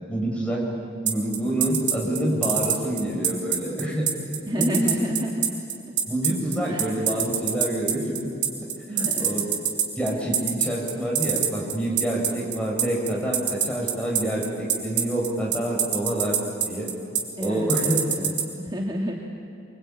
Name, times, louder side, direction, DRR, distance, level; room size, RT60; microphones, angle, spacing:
voice 1, 0.1-0.7 1.0-4.1 4.5-5.0 6.1-8.3 8.9-9.4 10.0-16.4 16.7-16.9 17.4-18.0, right 1 dB, 5° left, -3 dB, 5.9 m, -27 dB
sound 1, 1.1-18.4, right 9 dB, 40° right, 3.4 m, -23 dB
voice 2, 4.4-5.5 6.7-7.0 8.9-9.5 17.4-19.1, equal, 25° right, -1 dB, 1.9 m, -29 dB
24.5 x 24.5 x 8.8 m, 2.7 s
head